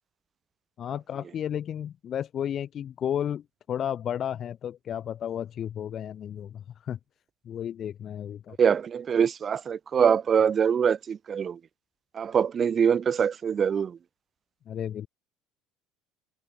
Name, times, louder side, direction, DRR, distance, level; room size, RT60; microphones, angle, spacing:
voice 1, 0.8-7.0 7.5-8.6 14.7-15.1, left 9 dB, 50° left, 3.9 m, -33 dB
voice 2, 8.6-11.6 12.1-14.0, right 7 dB, 40° right, 1.2 m, -24 dB
supercardioid pair, 85°, 0 cm